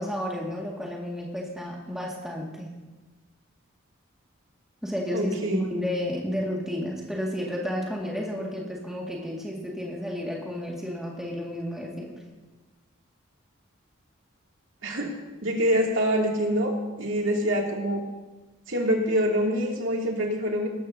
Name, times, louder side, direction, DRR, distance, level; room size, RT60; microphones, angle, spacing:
voice 1, 0.0-2.7 4.8-12.2, equal, ahead, -3 dB, 2.1 m, -32 dB
voice 2, 5.1-5.7 14.8-15.1 15.4-18.0 18.7-20.7, equal, 75° right, -1 dB, 2.6 m, -25 dB
19.0 x 14.0 x 2.8 m, 1.2 s
head